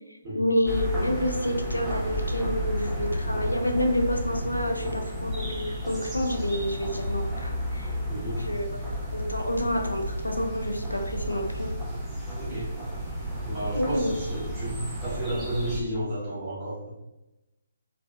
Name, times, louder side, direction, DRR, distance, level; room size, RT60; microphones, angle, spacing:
voice 1, 0.3-7.9 8.4-8.8 9.1-11.7 13.7-14.2, equal, 80° left, 2 dB, 0.4 m, -28 dB
sound 1, 0.7-15.8, equal, 10° right, 0.4 m, -32 dB
voice 2, 8.1-8.4 12.3-12.7 13.4-16.9, equal, 25° right, -7 dB, 0.9 m, -32 dB
2.8 x 2.3 x 2.2 m, 0.97 s
figure-of-eight pair, 140°, 0 cm